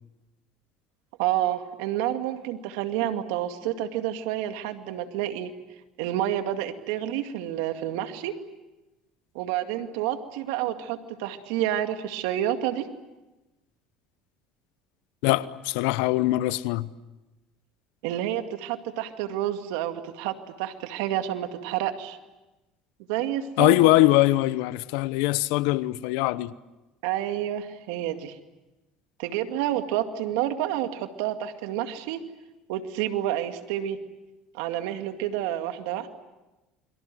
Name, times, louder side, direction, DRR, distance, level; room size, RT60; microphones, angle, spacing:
voice 1, 1.2-5.5 6.0-8.3 9.3-12.9 18.0-22.2 23.1-23.8 27.0-28.4 29.2-32.2 32.7-34.0 34.5-36.1, right 12 dB, 75° right, 2.2 m, -29 dB
voice 2, 15.2-16.9 23.6-26.5, left 18 dB, 75° left, 0.9 m, -22 dB
29.0 x 23.5 x 7.7 m
hypercardioid pair, 80°, 0 cm